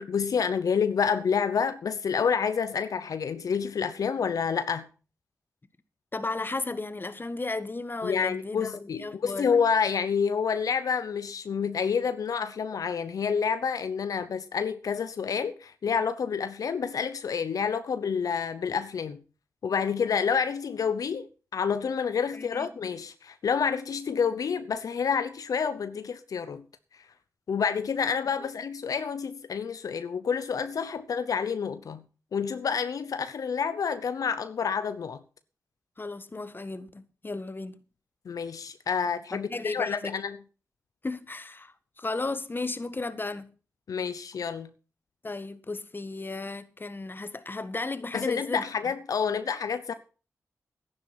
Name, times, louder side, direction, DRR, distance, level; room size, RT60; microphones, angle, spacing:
voice 1, 0.0-4.9 8.0-19.2 19.6-26.6 27.5-32.0 32.3-35.2 38.3-40.4 43.9-44.7 48.1-49.9, left 6 dB, 80° left, 0.8 m, -28 dB
voice 2, 6.1-9.5 22.3-22.7 28.4-28.5 36.0-37.8 39.3-40.2 41.0-43.5 45.2-48.6, left 3 dB, 35° left, 1.5 m, -34 dB
10.5 x 10.5 x 6.0 m
cardioid pair, 45°, 6 cm